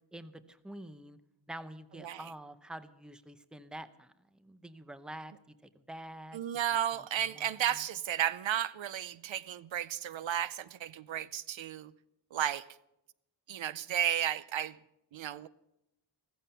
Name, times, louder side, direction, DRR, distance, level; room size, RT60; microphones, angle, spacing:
voice 1, 0.1-1.2 1.5-5.3 5.6-6.4 7.2-7.5, right 1 dB, ahead, 0.7 m, -47 dB
voice 2, 6.3-11.9 12.3-12.7 13.5-14.8 15.1-15.5, right 10 dB, 75° right, 0.7 m, -33 dB
15.5 x 14.5 x 5.7 m
wide cardioid pair, 160°, 46 cm